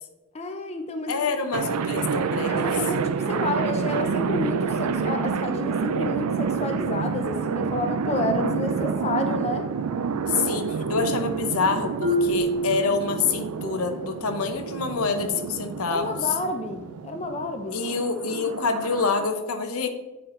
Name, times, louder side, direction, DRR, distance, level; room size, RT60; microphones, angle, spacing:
voice 1, 0.3-1.4 2.3-9.7 15.9-17.8, left 2 dB, 30° left, 5 dB, 0.5 m, -30 dB
voice 2, 1.1-2.7 10.3-16.2 17.7-19.9, left 5 dB, 75° left, 7 dB, 0.7 m, -26 dB
sound 1, 1.5-19.3, right 6 dB, 90° right, 0.4 m, -28 dB
Marimba xylophone, 12.0-13.8, right 1 dB, 50° right, 1.3 m, -27 dB
8.8 x 4.5 x 3.8 m, 1.0 s
head